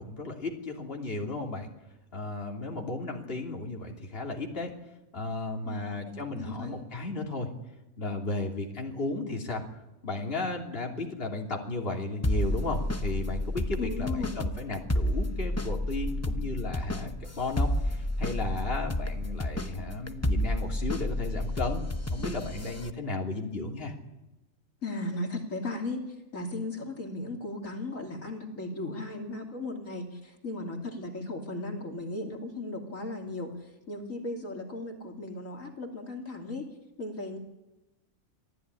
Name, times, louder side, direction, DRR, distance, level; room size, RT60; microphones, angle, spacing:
voice 1, 0.0-1.7 2.1-4.7 5.1-7.5 8.0-9.6 10.0-21.8 22.1-23.9, left 2 dB, 40° left, 1 dB, 3.2 m, -34 dB
voice 2, 5.6-6.8 13.8-14.4 24.8-36.7 37.0-37.4, left 2 dB, 65° left, 2 dB, 3.3 m, -36 dB
sound 1, 12.2-22.9, left 1 dB, 15° left, 0.7 m, -31 dB
26.5 x 16.0 x 9.8 m, 0.98 s
omnidirectional pair, 1.5 m